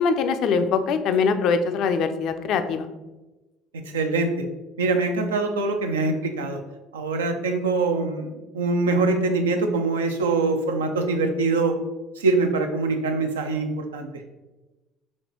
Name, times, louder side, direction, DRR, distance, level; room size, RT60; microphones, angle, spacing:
voice 1, 0.0-2.9, left 5 dB, 60° left, 9 dB, 0.3 m, -22 dB
voice 2, 3.9-4.3 4.8-6.6 6.9-11.8 12.2-14.1, right 3 dB, 90° right, 5 dB, 0.4 m, -23 dB
4.2 x 2.7 x 2.9 m, 1.1 s
hypercardioid pair, 65°, 0 cm